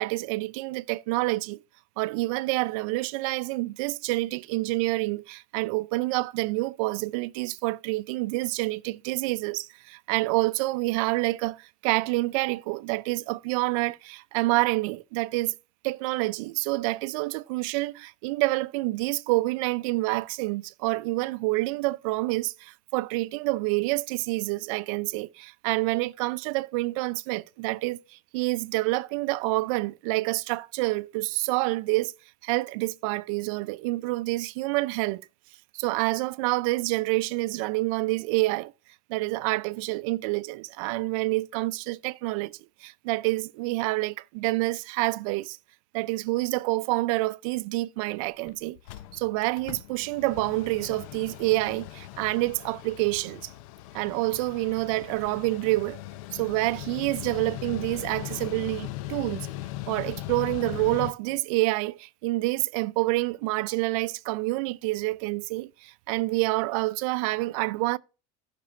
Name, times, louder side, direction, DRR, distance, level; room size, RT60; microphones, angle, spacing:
voice 1, 0.0-1.6 2.0-15.5 15.8-32.1 32.4-35.2 35.7-38.7 39.1-45.6 45.9-48.8 49.1-53.5 53.9-56.0 56.3-59.5 59.9-68.0, right 21 dB, 80° right, 0.5 m, -28 dB
Mechanical fan, 48.1-48.2 48.5-48.6 48.8-61.1, left 15 dB, 80° left, 0.5 m, -39 dB
15.5 x 6.0 x 2.4 m
supercardioid pair, 120°, 17 cm